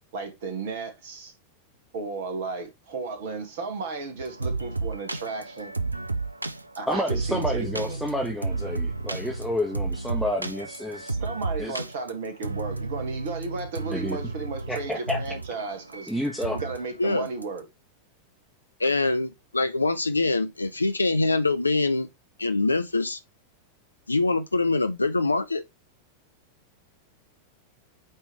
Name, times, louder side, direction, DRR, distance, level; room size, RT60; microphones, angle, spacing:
voice 1, 0.1-1.3 1.9-5.7 6.8-8.0 11.1-16.1 16.5-17.7, right 4 dB, 55° right, 2.0 m, -34 dB
sound 1, 4.2-16.8 17.3-17.6, right 3 dB, 85° right, 0.5 m, -32 dB
voice 2, 6.9-11.1 11.6-11.8 13.9-14.2 14.7-15.2 16.1-16.6, left 1 dB, ahead, 1.3 m, -29 dB
voice 3, 18.8-22.1 22.4-23.2 24.1-25.6, left 3 dB, 80° left, 0.8 m, -24 dB
8.7 x 3.4 x 3.2 m
figure-of-eight pair, 90°, 0 cm